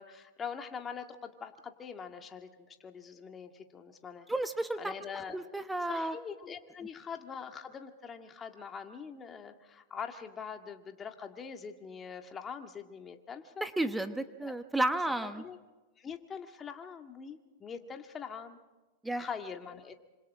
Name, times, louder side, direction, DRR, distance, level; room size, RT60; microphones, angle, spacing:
voice 1, 0.0-4.3 4.8-5.4 5.9-13.7 14.4-14.5 15.2-15.6 16.0-18.6 19.2-19.9, left 6 dB, 25° left, 5 dB, 2.0 m, -43 dB
voice 2, 4.3-4.9 5.3-6.2 13.6-15.4 19.0-19.3, right 1 dB, 5° right, 9 dB, 1.1 m, -32 dB
26.5 x 26.5 x 3.7 m, 1.1 s
hypercardioid pair, 105°, 0 cm